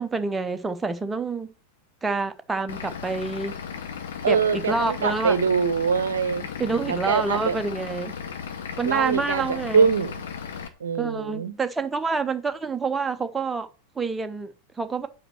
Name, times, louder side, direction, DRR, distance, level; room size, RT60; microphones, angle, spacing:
voice 1, 0.0-1.5 2.0-3.5 4.2-5.4 6.6-8.1 8.8-9.9 11.0-13.7 14.0-14.5 14.8-15.1, right 4 dB, 10° right, 0.6 m, -27 dB
Vehicle / Engine, 2.7-10.7, left 7 dB, 60° left, 0.8 m, -36 dB
voice 2, 4.2-6.5 6.9-7.6 8.8-9.4 9.7-10.2 10.8-11.5, right 5 dB, 65° right, 0.6 m, -23 dB
5.0 x 4.2 x 5.8 m
figure-of-eight pair, 90°, 0 cm